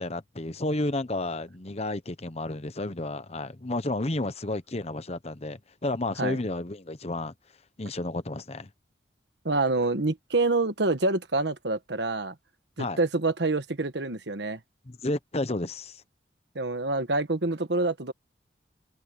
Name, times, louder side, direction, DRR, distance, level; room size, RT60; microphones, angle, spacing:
voice 1, 0.0-7.3 7.8-8.7 12.8-13.0 14.9-16.0, left 2 dB, 35° left, 1.0 m, -31 dB
voice 2, 9.4-12.3 12.8-14.6 16.5-18.1, right 2 dB, 70° right, 1.5 m, -27 dB
open air
head